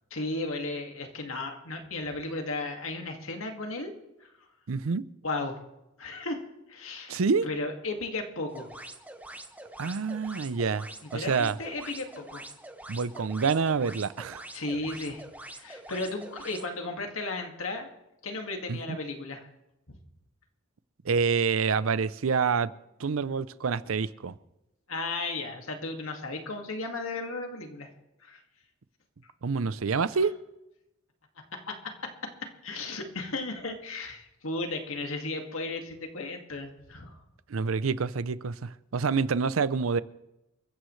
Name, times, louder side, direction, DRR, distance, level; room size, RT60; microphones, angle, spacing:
voice 1, 0.1-3.9 4.2-4.3 5.2-5.6 6.0-6.4 6.7-8.7 11.1-12.4 14.5-15.3 15.5-17.9 18.2-19.5 19.9-20.0 24.9-27.9 28.2-28.4 30.1-30.3 31.7-31.9 32.6-37.2, left 2 dB, 75° left, 2.1 m, -35 dB
voice 2, 4.7-5.0 7.1-7.5 9.8-11.6 12.9-14.4 18.7-19.0 21.0-22.7 23.0-24.3 29.4-30.3 37.5-40.0, right 5 dB, 75° right, 0.6 m, -27 dB
sound 1, 8.5-16.7, right 1 dB, 10° right, 1.0 m, -45 dB
29.0 x 14.5 x 3.2 m
head